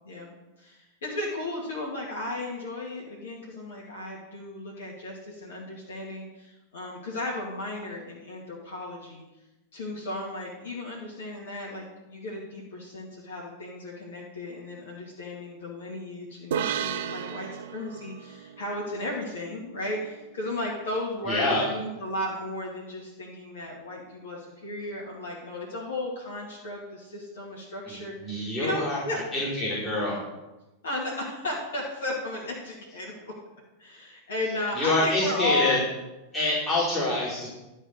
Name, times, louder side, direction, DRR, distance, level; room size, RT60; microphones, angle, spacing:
voice 1, 0.0-9.2 9.7-29.2 30.8-33.3 33.8-35.8, left 1 dB, 60° left, -4 dB, 2.2 m, -35 dB
sound 1, 16.5-20.0, right 9 dB, 55° right, 0.5 m, -34 dB
voice 2, 21.2-21.6 27.9-29.0 29.3-30.2 34.7-35.8 36.3-37.5, left 2 dB, 15° left, -10 dB, 4.2 m, -26 dB
12.0 x 4.6 x 6.6 m, 1.0 s
figure-of-eight pair, 90°, 0 cm